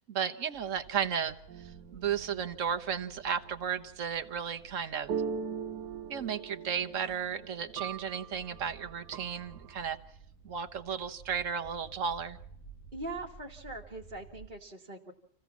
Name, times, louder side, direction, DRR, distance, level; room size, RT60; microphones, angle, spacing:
voice 1, 0.0-5.1 6.1-10.0 10.4-12.4, right 7 dB, 55° right, 8 dB, 1.4 m, -34 dB
sound 1, 0.5-14.5, right 5 dB, 50° left, 7.3 m, -54 dB
sound 2, 1.5-3.3 5.1-9.9, right 7 dB, 85° right, 1.7 m, -41 dB
voice 2, 12.9-15.1, right 2 dB, 30° right, -3 dB, 1.7 m, -42 dB
27.5 x 16.0 x 7.2 m, 0.72 s
omnidirectional pair, 1.7 m